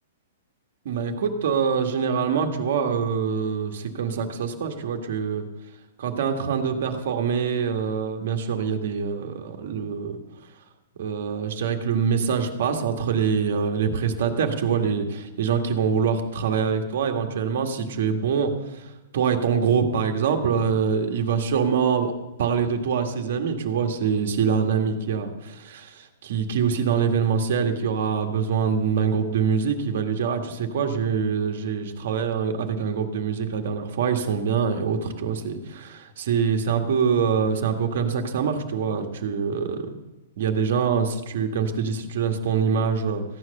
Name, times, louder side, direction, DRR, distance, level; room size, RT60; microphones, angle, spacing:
voice 1, 0.8-5.4 6.0-10.2 11.0-22.1 22.4-39.9 40.4-43.2, right 6 dB, 55° right, 5 dB, 1.8 m, -24 dB
15.0 x 9.5 x 6.7 m, 1.0 s
hypercardioid pair, 175°, 0 cm